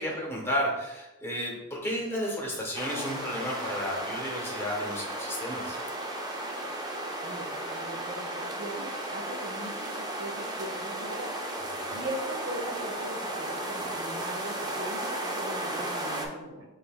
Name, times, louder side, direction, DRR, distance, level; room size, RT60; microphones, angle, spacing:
voice 1, 0.0-5.8 11.8-12.0, equal, 10° left, -3 dB, 1.0 m, -32 dB
sound 1, 2.7-16.3, right 1 dB, 20° right, 0.5 m, -35 dB
voice 2, 7.2-11.4 11.9-16.7, right 1 dB, 60° right, 2 dB, 0.7 m, -40 dB
6.5 x 3.2 x 2.2 m, 1.0 s
head